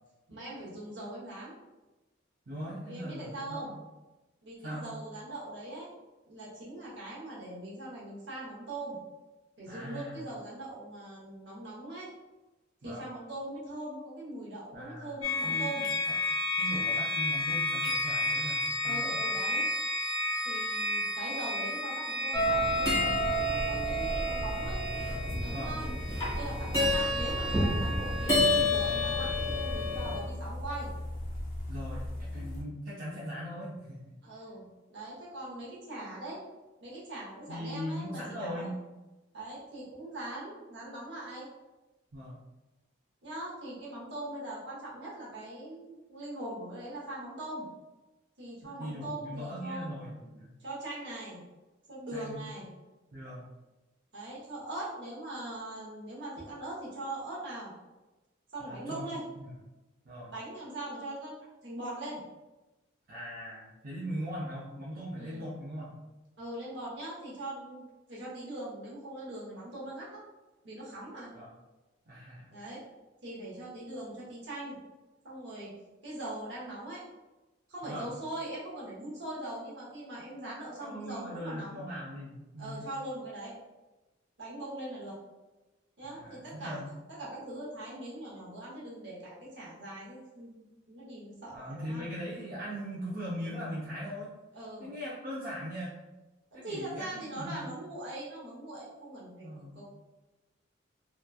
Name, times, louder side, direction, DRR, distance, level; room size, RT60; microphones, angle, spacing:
voice 1, 0.3-1.5 2.9-3.8 4.4-5.9 6.3-9.0 9.6-12.1 12.8-15.9 18.8-19.7 20.4-24.8 25.4-25.9 26.3-30.9 34.2-36.4 36.8-38.7 39.3-41.5 43.2-47.7 48.4-49.9 50.6-51.4 51.9-52.7 54.1-57.7 58.5-59.2 60.3-61.3 61.6-62.2 65.2-65.4 66.4-67.8 68.1-70.2 70.6-71.3 72.5-72.8 73.2-74.8 75.2-75.7 76.0-77.0 77.7-81.8 82.6-83.5 84.4-85.2 86.0-86.8 87.1-92.1 94.5-94.9 96.5-99.5 99.7-99.9, right 1 dB, 60° right, -6 dB, 0.9 m, -41 dB
voice 2, 2.5-3.7 4.6-4.9 9.7-10.2 12.8-13.1 14.7-15.7 16.6-19.2 25.5-25.7 26.7-26.9 31.7-34.0 37.5-38.7 42.1-42.4 48.6-50.5 52.1-52.4 53.1-53.5 58.6-59.1 59.4-59.5 60.0-60.3 63.1-65.9 71.3-71.5 72.1-72.5 77.8-78.1 80.8-82.9 86.0-86.9 91.5-94.3 94.8-96.0 96.5-97.7 99.4-99.8, equal, 45° right, -8 dB, 0.5 m, -40 dB
sound 1, 15.2-29.0, left 2 dB, 85° left, 0.7 m, -33 dB
sound 2, 22.3-30.2, left 1 dB, 15° left, 0.7 m, -29 dB
sound 3, 23.1-32.6, left 1 dB, 45° left, 0.5 m, -39 dB
2.9 x 2.2 x 2.2 m, 1.1 s
head